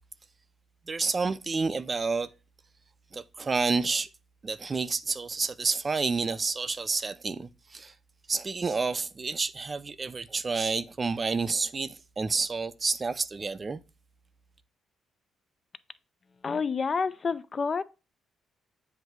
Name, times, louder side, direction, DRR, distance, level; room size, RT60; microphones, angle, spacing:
voice 1, 0.9-2.3 3.1-4.1 4.4-7.9 8.3-13.8, right 4 dB, 30° right, 0.4 m, -29 dB
voice 2, 16.4-17.8, left 5 dB, 40° left, 0.4 m, -28 dB
7.8 x 2.7 x 4.6 m
cardioid pair, 90°, 0 cm